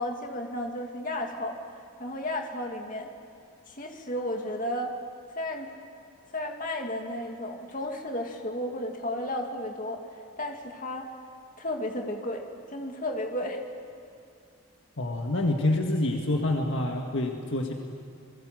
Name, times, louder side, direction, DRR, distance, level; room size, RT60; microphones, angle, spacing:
voice 1, 0.0-1.6 2.0-3.1 3.7-5.0 5.4-5.7 6.3-10.0 10.4-11.1 11.6-13.6, left 1 dB, 40° left, 2 dB, 2.5 m, -33 dB
voice 2, 15.0-17.7, left 2 dB, 55° left, 2 dB, 1.9 m, -27 dB
29.5 x 22.0 x 7.8 m, 2.6 s
head